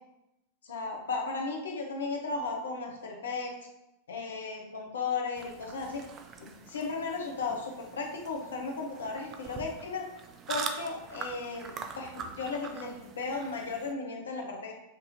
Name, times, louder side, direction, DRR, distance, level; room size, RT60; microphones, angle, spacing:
voice 1, 0.6-3.5 4.1-6.0 6.4-10.1 10.5-14.7, left 4 dB, 65° left, 1 dB, 0.7 m, -35 dB
sound 1, 5.3-13.9, right 5 dB, 30° right, 0.4 m, -43 dB
5.2 x 2.7 x 2.7 m, 0.91 s
figure-of-eight pair, 90°, 0 cm